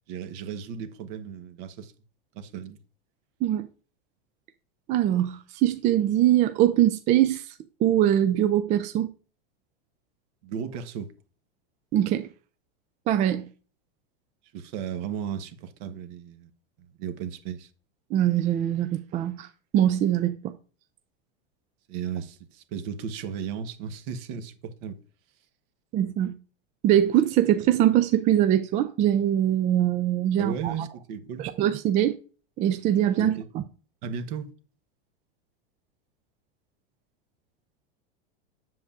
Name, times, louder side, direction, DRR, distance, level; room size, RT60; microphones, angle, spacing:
voice 1, 0.1-1.9 2.3-2.8 10.4-11.1 14.5-16.5 17.0-17.7 21.9-25.0 30.4-31.5 33.2-33.5 34.0-34.5, right 7 dB, 55° right, 1.1 m, -35 dB
voice 2, 4.9-7.5 7.8-9.1 11.9-12.3 13.1-13.5 18.1-19.5 19.7-20.5 25.9-26.3 26.8-30.7 31.4-32.2 32.6-33.6, right 11 dB, 25° right, 0.3 m, -22 dB
7.7 x 7.3 x 2.5 m
supercardioid pair, 140°, 30 cm